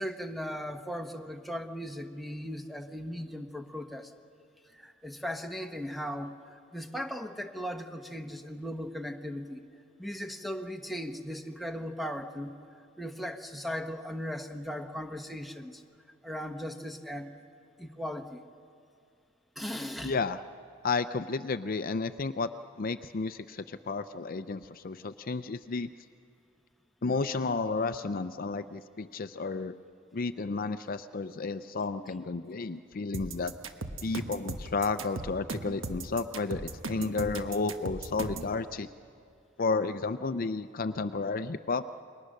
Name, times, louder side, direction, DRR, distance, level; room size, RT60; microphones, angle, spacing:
voice 1, 0.0-4.1 4.7-9.6 10.0-12.5 13.0-15.8 16.2-17.4 17.8-18.4 19.6-20.1, equal, ahead, 4 dB, 1.1 m, -38 dB
voice 2, 20.0-20.4 20.8-22.5 22.8-25.9 27.0-29.7 30.1-33.5 34.0-38.9 39.6-41.8, left 4 dB, 45° left, 11 dB, 0.5 m, -32 dB
sound 1, 33.1-38.5, right 3 dB, 80° right, 1.3 m, -37 dB
29.0 x 22.5 x 6.5 m, 2.4 s
head